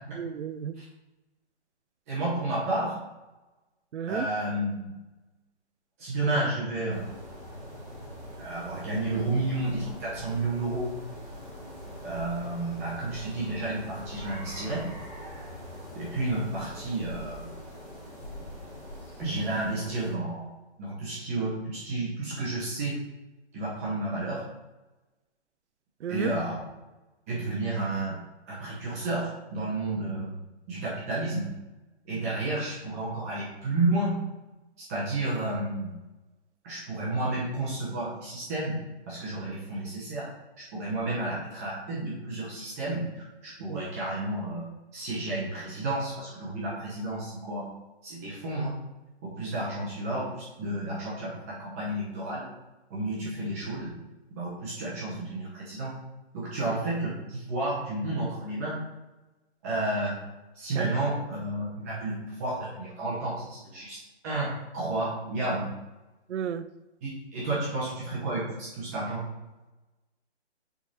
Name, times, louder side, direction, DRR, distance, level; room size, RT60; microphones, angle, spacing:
voice 1, 0.2-0.8 3.9-4.3 26.0-26.3 43.7-43.8 46.5-46.6 60.8-60.9 66.3-66.7, right 8 dB, 90° right, 13 dB, 0.6 m, -32 dB
voice 2, 2.1-3.0 4.1-4.9 6.0-7.1 8.4-10.9 12.0-14.8 15.9-17.5 19.2-20.5 20.8-23.0 23.5-24.4 26.1-26.7 27.3-28.2 28.5-30.3 30.7-31.5 32.1-34.2 34.9-35.9 36.6-38.8 39.1-40.3 40.7-44.6 44.9-47.6 48.0-48.7 49.2-52.5 52.9-53.9 54.3-55.9 56.3-58.7 59.6-60.2 60.5-64.0 64.2-65.7 67.0-69.2, right 2 dB, 15° right, -7 dB, 0.9 m, -31 dB
sound 1, 6.9-20.1, equal, 10° left, 2.0 m, -43 dB
6.0 x 3.9 x 4.1 m, 1.1 s
hypercardioid pair, 170°, 34 cm